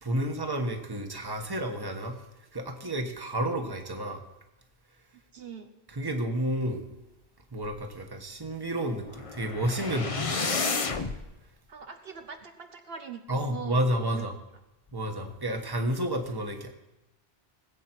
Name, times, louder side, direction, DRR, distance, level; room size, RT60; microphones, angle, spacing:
voice 1, 0.0-2.2 2.5-4.2 5.9-6.8 7.5-10.6 13.3-14.4 14.9-16.7, right 1 dB, 20° right, 4 dB, 1.3 m, -31 dB
voice 2, 5.3-5.7 11.7-13.9 14.1-14.3, right 6 dB, 65° right, 6 dB, 1.1 m, -42 dB
sound 1, 9.0-11.2, left 4 dB, 35° left, 0.8 m, -31 dB
20.0 x 8.3 x 4.5 m, 0.96 s
omnidirectional pair, 1.1 m